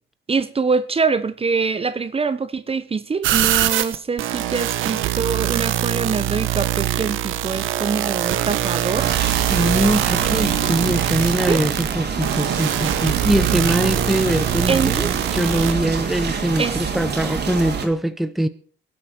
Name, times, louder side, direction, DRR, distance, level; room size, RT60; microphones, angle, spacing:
voice 1, 0.3-9.1 11.5-11.6 14.7-14.9 16.6-16.8, right 4 dB, 30° right, 0.9 m, -24 dB
sound 1, 3.2-15.7, right 13 dB, 85° right, 1.0 m, -23 dB
sound 2, 9.0-17.8, right 6 dB, 55° right, 3.0 m, -26 dB
voice 2, 9.5-18.5, right 1 dB, ahead, 0.9 m, -22 dB
23.5 x 8.5 x 4.5 m
cardioid pair, 90°, 20 cm